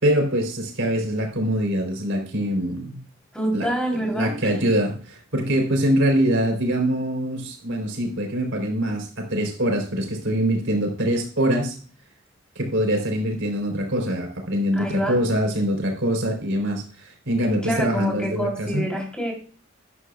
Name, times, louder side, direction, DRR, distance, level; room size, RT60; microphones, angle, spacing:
voice 1, 0.0-3.0 3.5-3.7 4.0-11.8 12.6-18.9, equal, 70° right, 3 dB, 3.7 m, -24 dB
voice 2, 3.3-4.5 14.7-15.2 17.3-19.3, right 1 dB, 5° left, 0 dB, 3.5 m, -27 dB
13.5 x 11.0 x 2.4 m, 0.40 s
head